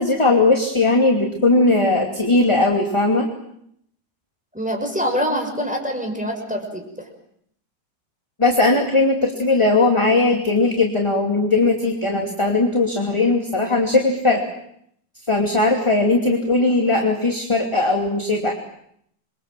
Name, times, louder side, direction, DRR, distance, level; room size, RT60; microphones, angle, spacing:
voice 1, 0.0-3.3 8.4-14.4 15.3-18.5, left 2 dB, 15° left, 2 dB, 2.7 m, -18 dB
voice 2, 4.5-6.9, equal, 5° right, 2 dB, 6.1 m, -25 dB
28.5 x 24.0 x 7.7 m, 0.71 s
omnidirectional pair, 1.9 m